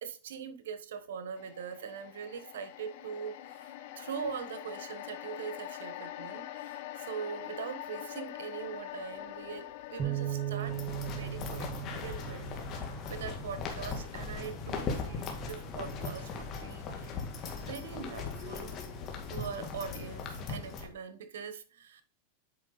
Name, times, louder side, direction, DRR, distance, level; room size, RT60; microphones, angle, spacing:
voice 1, 0.0-10.8 11.0-17.2 17.6-18.7 19.3-22.0, right 6 dB, 85° right, 1.3 m, -42 dB
sound 1, 1.4-15.7 16.1-16.2, left 14 dB, 60° left, 0.9 m, -45 dB
sound 2, 10.0-16.2, right 12 dB, 35° right, 1.8 m, -40 dB
sound 3, 10.6-20.9, left 4 dB, 35° left, 2.1 m, -39 dB
8.4 x 5.6 x 4.1 m
supercardioid pair, 140°, 0 cm